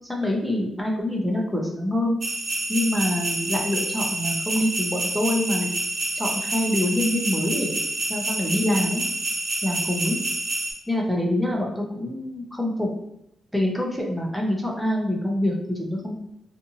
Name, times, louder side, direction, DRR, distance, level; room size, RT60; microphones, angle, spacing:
voice 1, 0.1-2.2 2.7-5.7 6.2-7.8 8.1-9.0 9.6-10.2 10.9-12.9 13.5-16.1, left 1 dB, ahead, -1 dB, 0.6 m, -25 dB
sound 1, 2.2-10.7, right 2 dB, 65° right, 1.3 m, -28 dB
2.6 x 2.6 x 2.6 m, 0.79 s
cardioid pair, 100°, 0 cm